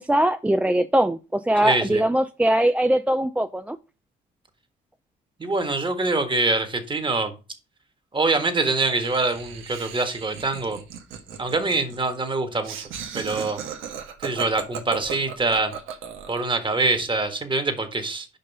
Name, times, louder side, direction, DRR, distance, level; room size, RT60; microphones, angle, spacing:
voice 1, 0.0-3.8, right 1 dB, 5° right, 0.3 m, -21 dB
voice 2, 1.6-2.0 5.4-7.3 8.1-10.8 11.4-12.7 13.1-13.6 14.2-15.7 16.3-18.3, right 3 dB, 25° right, 1.6 m, -24 dB
Laughter, 8.9-16.5, right 8 dB, 90° right, 1.4 m, -36 dB
5.4 x 5.3 x 5.3 m
cardioid pair, 90°, 20 cm